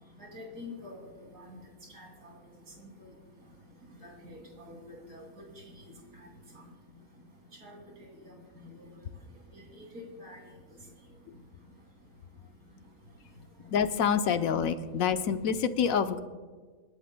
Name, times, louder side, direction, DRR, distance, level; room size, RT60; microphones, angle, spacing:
voice 1, 0.2-1.6 1.9-2.4 4.0-5.2 7.6-7.8 8.8-8.9 9.5-10.4, left 2 dB, 90° right, 0 dB, 3.2 m, -46 dB
voice 2, 13.7-16.2, left 7 dB, 80° left, 9 dB, 1.2 m, -27 dB
28.5 x 11.0 x 2.2 m, 1.5 s
omnidirectional pair, 1.4 m